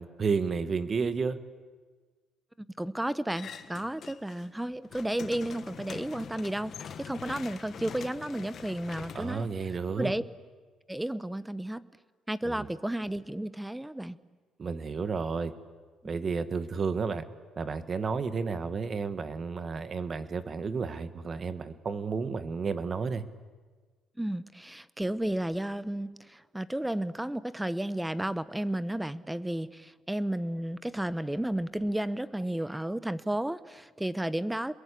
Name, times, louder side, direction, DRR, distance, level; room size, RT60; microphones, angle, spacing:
voice 1, 0.0-1.4 9.1-10.1 12.4-12.7 14.6-15.5 16.0-17.2 17.6-23.2, right 5 dB, 40° right, 11 dB, 1.7 m, -31 dB
voice 2, 2.6-10.2 10.9-11.8 12.3-14.2 24.2-34.7, right 1 dB, 5° right, 16 dB, 0.9 m, -33 dB
sound 1, 3.3-4.5 4.8-10.1, left 7 dB, 55° left, 1.6 m, -44 dB
29.0 x 22.0 x 8.6 m, 1.4 s
cardioid pair, 105°, 0 cm